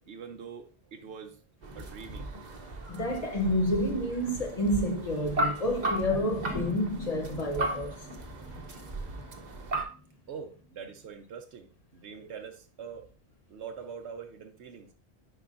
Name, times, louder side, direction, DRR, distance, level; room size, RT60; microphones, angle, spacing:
voice 1, 0.1-1.4 1.7-2.3 8.9-9.0 10.3-11.7 11.9-13.1 13.5-14.9, right 6 dB, 90° right, 1.1 m, -43 dB
sound 1, 1.6-9.8, right 1 dB, 45° right, 0.9 m, -36 dB
voice 2, 2.9-8.1, equal, 40° left, 0.9 m, -29 dB
sound 2, 6.1-10.6 11.0-11.1, left 1 dB, ahead, 0.7 m, -43 dB
9.9 x 5.0 x 2.6 m
omnidirectional pair, 1.1 m